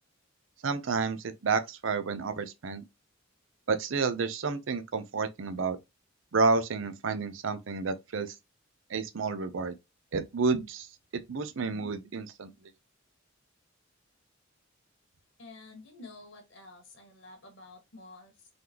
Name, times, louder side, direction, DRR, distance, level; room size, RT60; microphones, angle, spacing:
voice 1, 0.6-2.8 3.7-5.8 6.3-8.3 8.9-9.8 10.1-10.9 11.1-12.5, right 4 dB, 70° right, 0.6 m, -30 dB
voice 2, 15.4-18.5, left 2 dB, 70° left, 1.6 m, -50 dB
3.9 x 3.4 x 2.9 m
head